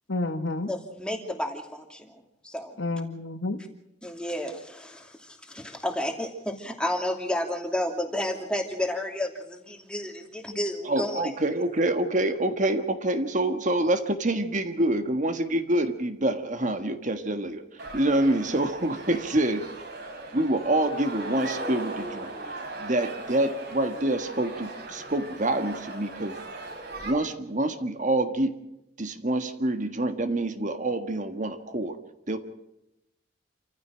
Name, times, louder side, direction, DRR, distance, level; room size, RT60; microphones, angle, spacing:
voice 1, 0.1-0.7 2.8-3.6, left 2 dB, 70° left, 8 dB, 1.5 m, -29 dB
voice 2, 0.7-2.1 2.4-2.8 4.0-11.3, left 1 dB, 5° left, 3 dB, 2.7 m, -31 dB
voice 3, 10.8-19.8 20.3-26.4 27.0-28.6 29.0-32.0 32.3-32.4, right 1 dB, 40° right, 8 dB, 1.6 m, -26 dB
sound 1, 17.8-27.1, right 2 dB, 60° right, 4.4 m, -38 dB
28.5 x 15.0 x 6.3 m, 0.86 s
head